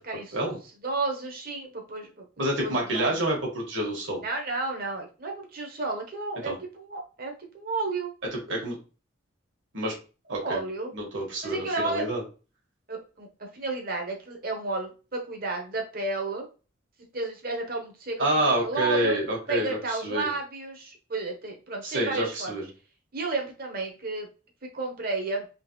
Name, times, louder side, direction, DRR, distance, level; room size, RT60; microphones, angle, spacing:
voice 1, 0.0-0.4 0.8-2.2 2.6-3.2 4.2-8.1 10.4-10.9 11.4-12.0 12.9-16.5 17.1-19.1 19.5-22.5 23.1-24.3 24.6-25.5, right 3 dB, 45° right, 2 dB, 1.1 m, -32 dB
voice 2, 2.4-4.2 6.4-6.6 8.3-8.8 9.7-9.9 10.3-10.6 10.9-12.2 18.2-19.8 20.0-20.3 21.8-22.7, right 1 dB, 65° right, -1 dB, 1.6 m, -28 dB
3.8 x 3.2 x 3.1 m, 0.34 s
head